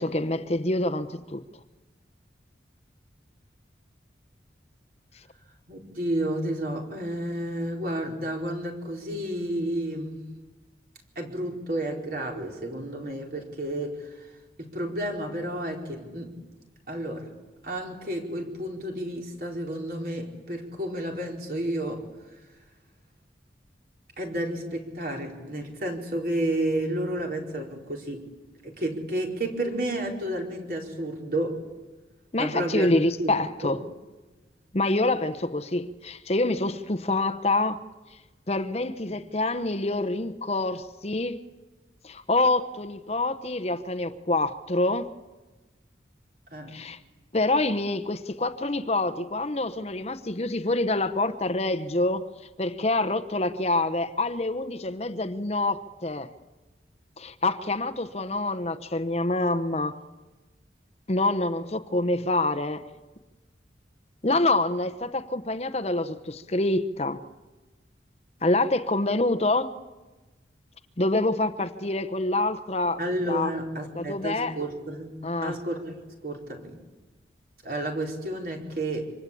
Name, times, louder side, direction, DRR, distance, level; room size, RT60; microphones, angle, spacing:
voice 1, 0.0-1.4 32.3-33.8 34.7-37.8 38.5-41.4 42.0-45.1 46.7-47.0 47.3-52.3 52.6-56.3 57.2-59.9 61.1-62.8 64.2-67.2 68.4-69.8 71.0-73.0 73.3-73.5 73.9-74.6 75.2-75.6, left 2 dB, 35° left, 0.9 m, -26 dB
voice 2, 5.7-10.2 11.2-14.3 14.6-16.4 16.9-17.3 17.6-22.1 24.2-28.3 28.6-31.6 32.4-32.9 33.2-33.3 33.6-33.8 46.5-46.8 73.0-75.1 75.4-76.8 77.6-79.1, right 1 dB, 50° right, 4.4 m, -31 dB
26.5 x 25.5 x 8.5 m
head